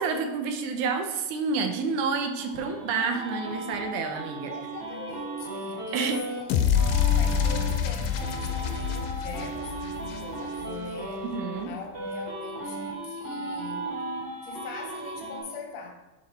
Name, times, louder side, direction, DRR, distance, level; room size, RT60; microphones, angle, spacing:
voice 1, 0.0-4.5 5.9-6.2 11.2-11.7, right 5 dB, 75° right, 5 dB, 2.0 m, -29 dB
sound 1, 2.0-6.4 6.7-11.6 11.9-15.4, right 2 dB, 30° right, 1.3 m, -36 dB
voice 2, 4.5-11.3 11.6-13.9 14.4-15.9, left 5 dB, 70° left, 3 dB, 1.8 m, -42 dB
sound 2, 6.5-10.7, left 8 dB, 85° left, 2.2 m, -26 dB
9.6 x 4.0 x 4.2 m, 1.1 s
omnidirectional pair, 3.8 m